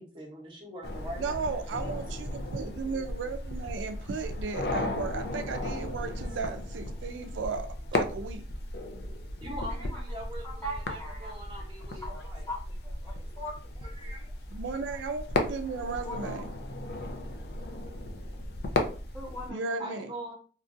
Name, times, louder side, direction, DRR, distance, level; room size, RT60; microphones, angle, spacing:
voice 1, 0.0-1.4 4.6-4.8 9.4-12.4 13.0-13.2 14.0-14.3 14.9-15.0 19.8-20.3, equal, 25° right, 0.8 m, -42 dB
sound 1, 0.8-19.5, left 2 dB, 60° left, 0.4 m, -35 dB
voice 2, 1.2-8.4 14.5-16.4 19.5-20.1, right 4 dB, 85° right, 0.4 m, -35 dB
voice 3, 10.4-11.3 12.0-13.5 13.8-13.9 15.8-16.5 17.6-17.7 19.1-20.1, equal, 15° left, 1.0 m, -41 dB
3.0 x 2.4 x 2.5 m
head